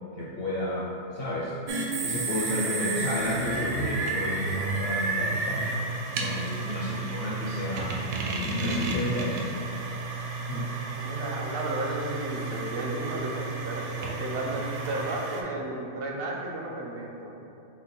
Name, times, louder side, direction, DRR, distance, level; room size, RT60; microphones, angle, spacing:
voice 1, 0.2-1.5 2.0-5.8 6.2-8.0 8.6-9.5 10.5-10.7, left 1 dB, 60° left, -7 dB, 0.6 m, -31 dB
sound 1, 1.7-15.4, right 3 dB, 85° right, 1.1 m, -31 dB
voice 2, 11.0-17.3, right 2 dB, 60° right, -1 dB, 0.6 m, -33 dB
5.7 x 2.1 x 3.8 m, 2.7 s
omnidirectional pair, 1.4 m